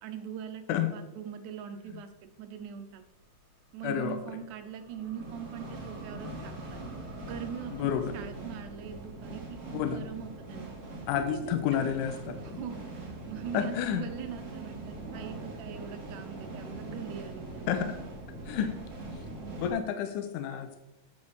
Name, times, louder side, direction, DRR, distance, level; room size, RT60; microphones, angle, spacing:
voice 1, 0.0-3.0 3.7-6.8 7.2-10.7 11.1-11.8 12.4-17.7, right 8 dB, 85° right, 7 dB, 2.2 m, -42 dB
sound 1, 2.3-2.4 3.9-19.7, right 2 dB, 40° right, 1.5 m, -42 dB
voice 2, 3.8-4.2 7.7-8.2 9.7-10.0 11.1-12.6 13.5-14.1 17.7-18.0 18.5-18.8 19.1-19.3 19.6-20.8, left 9 dB, 80° left, 7 dB, 2.2 m, -30 dB
8.4 x 7.2 x 3.3 m, 0.97 s
omnidirectional pair, 3.6 m